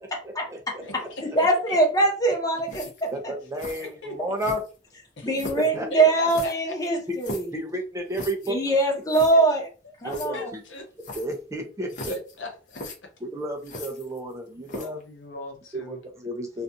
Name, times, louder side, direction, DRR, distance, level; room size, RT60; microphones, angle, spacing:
voice 1, 0.2-1.4 3.1-4.6 5.5-6.1 7.5-8.6 10.0-10.6 11.1-12.1 13.2-14.9 15.7-16.6, right 1 dB, 15° right, 0.5 m, -32 dB
voice 2, 0.8-1.8 3.8-4.2 5.2-5.5 5.9-6.7 9.3-9.4 10.3-10.9 12.1-13.1 14.6-16.0 16.5-16.6, left 1 dB, 80° left, 0.8 m, -39 dB
voice 3, 1.3-3.3 5.2-7.5 8.5-9.6 10.0-10.5, right 2 dB, 20° left, 0.8 m, -22 dB
sound 1, 2.7-3.1 3.6-3.9 4.4-4.9 5.3-5.7 6.3-7.6 8.1-8.5 8.8-8.9 9.1-9.3 10.1-10.3 11.0-11.4 11.9-12.3 12.7-13.0 13.6-14.3 14.7-15.0, left 2 dB, 45° left, 0.7 m, -38 dB
2.4 x 2.3 x 2.6 m
head